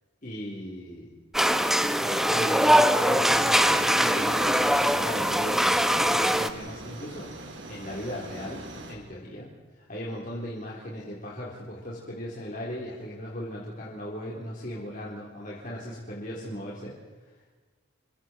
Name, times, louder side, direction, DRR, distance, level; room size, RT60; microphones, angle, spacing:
voice 1, 0.2-1.1 2.0-9.5 9.7-16.9, equal, 40° left, -5 dB, 4.0 m, -37 dB
sound 1, 1.3-6.5, equal, ahead, 0.8 m, -22 dB
sound 2, 3.3-9.0, right 1 dB, 60° right, 3.9 m, -42 dB
29.5 x 23.0 x 4.6 m, 1.3 s
head